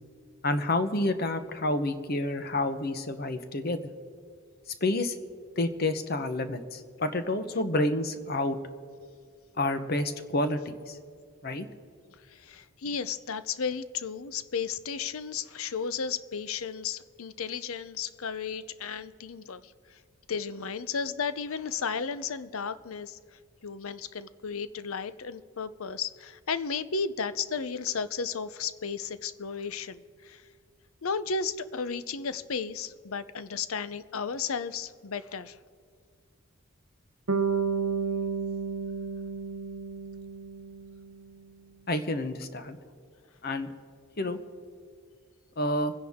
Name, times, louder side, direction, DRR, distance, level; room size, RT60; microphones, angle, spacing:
voice 1, 0.4-3.8 4.8-5.2 5.6-8.6 9.6-11.0 11.4-11.7 41.9-42.8 43.4-43.7 44.2-44.4 45.6-45.9, left 1 dB, 45° left, 9 dB, 0.9 m, -29 dB
voice 2, 12.3-20.0 20.3-23.2 23.6-30.4 31.0-35.6, left 5 dB, 75° left, 14 dB, 0.6 m, -34 dB
Bass guitar, 37.3-41.4, right 5 dB, 70° right, 0.8 m, -31 dB
25.0 x 10.5 x 3.6 m, 2.1 s
head